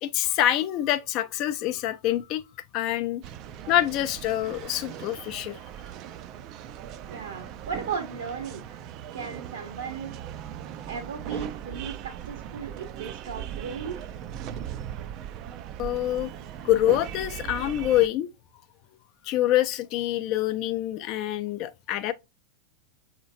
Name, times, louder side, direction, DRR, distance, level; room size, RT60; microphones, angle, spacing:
voice 1, 0.0-2.4 2.7-3.2 3.7-5.6 15.8-16.3 16.6-18.3 19.2-22.1, left 13 dB, 40° left, 0.5 m, -26 dB
sound 1, 3.2-18.1, right 10 dB, 40° right, 0.4 m, -39 dB
voice 2, 7.1-8.8 9.1-10.1 10.9-14.1, right 6 dB, 65° right, 0.8 m, -36 dB
7.0 x 2.9 x 2.5 m
figure-of-eight pair, 90°, 0 cm